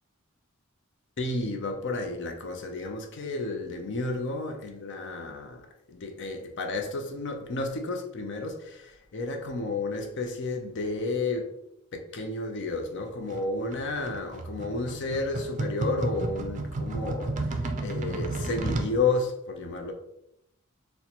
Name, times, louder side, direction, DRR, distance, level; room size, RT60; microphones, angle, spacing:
voice 1, 1.2-11.5 11.9-19.9, left 3 dB, 60° left, 0.5 m, -32 dB
sound 1, 13.3-18.9, right 2 dB, 35° right, 0.4 m, -32 dB
4.1 x 2.2 x 2.9 m
head